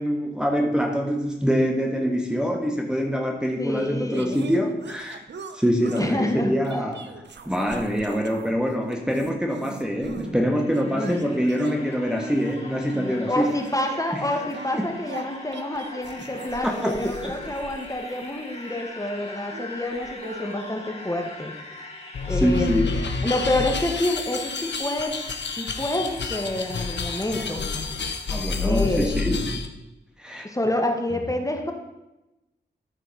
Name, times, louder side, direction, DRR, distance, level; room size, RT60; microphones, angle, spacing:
voice 1, 0.0-5.2 5.5-13.5 14.7-14.8 16.6-17.3 22.3-22.9 28.3-29.6 30.2-30.5, equal, 5° right, 1 dB, 1.5 m, -25 dB
voice 2, 3.6-4.4 6.0-6.8 10.9-11.3 12.9-21.5 22.3-22.9 23.2-25.2 25.5-27.6 28.6-29.2 30.4-31.7, left 1 dB, 20° left, 3 dB, 1.6 m, -28 dB
sound 1, 4.1-6.2 6.6-8.5 8.8-10.3 10.7-18.7 19.4-20.8, right 4 dB, 75° right, 0.8 m, -41 dB
sound 2, 10.1-28.7, left 2 dB, 35° left, 2.6 m, -42 dB
sound 3, 22.1-29.7, left 4 dB, 75° left, 1.1 m, -29 dB
13.0 x 4.6 x 5.9 m, 0.95 s
cardioid pair, 60°, 19 cm